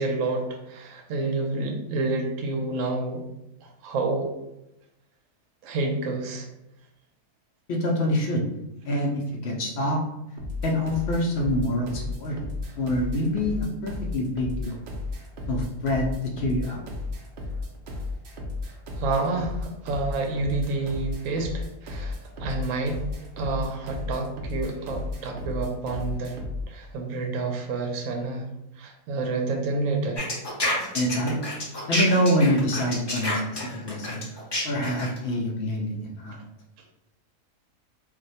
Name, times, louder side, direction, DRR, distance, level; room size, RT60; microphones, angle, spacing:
voice 1, 0.0-3.2 3.6-4.3 5.6-6.5 19.0-23.1 23.4-26.3 26.7-28.5 28.8-30.2, right 3 dB, 70° right, 2 dB, 0.9 m, -29 dB
voice 2, 7.7-8.4 8.8-10.0 10.6-12.4 12.8-14.8 15.5-16.8 30.9-31.4 31.9-36.4, left 1 dB, 70° left, 0 dB, 0.6 m, -26 dB
sound 1, 10.4-26.7, left 3 dB, 85° right, 0.4 m, -34 dB
sound 2, 30.2-35.2, left 1 dB, 30° left, 0.5 m, -28 dB
2.5 x 2.1 x 3.9 m, 0.87 s
omnidirectional pair, 1.6 m